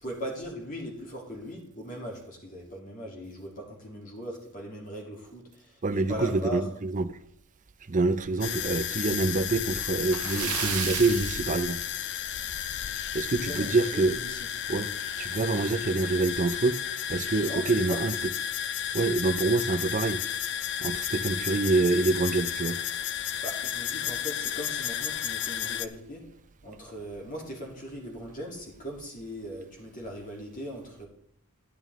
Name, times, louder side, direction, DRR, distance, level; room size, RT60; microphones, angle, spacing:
voice 1, 0.0-6.7 8.3-8.5 13.3-14.5 17.4-17.6 17.9-18.0 23.4-26.2 26.6-31.1, equal, 40° left, 3.0 m, -39 dB
voice 2, 5.8-7.2 7.9-11.8 13.1-14.2 14.7-14.9 15.2-18.2 18.9-20.2 20.8-22.8, right 3 dB, 35° right, 0.6 m, -26 dB
sound 1, 8.4-25.9, left 10 dB, 55° left, 0.5 m, -33 dB
Splash splatter, 10.0-12.4 12.7-12.8 13.3-13.4 14.8-14.9 15.2-15.3 16.0-16.2, right 12 dB, 80° right, 0.5 m, -34 dB
11.0 x 11.0 x 3.6 m
head